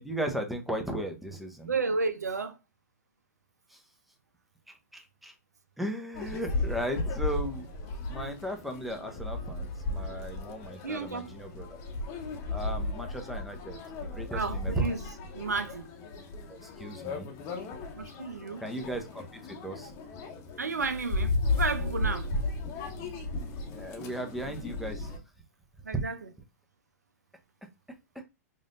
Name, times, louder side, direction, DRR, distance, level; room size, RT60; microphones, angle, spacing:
voice 1, 0.0-1.7 3.7-3.8 4.7-5.3 5.8-7.7 8.1-11.8 12.5-13.8 14.1-14.9 16.5-17.3 18.6-19.9 23.7-25.1 25.9-26.0, right 1 dB, ahead, 0.7 m, -36 dB
voice 2, 1.6-2.6 10.8-11.3 14.3-15.1 15.3-15.9 17.9-18.6 20.6-22.3 25.8-26.2, right 4 dB, 80° right, 0.6 m, -32 dB
sound 1, 6.1-25.2, left 2 dB, 35° left, 0.9 m, -35 dB
4.9 x 2.6 x 2.5 m
figure-of-eight pair, 105°, 9 cm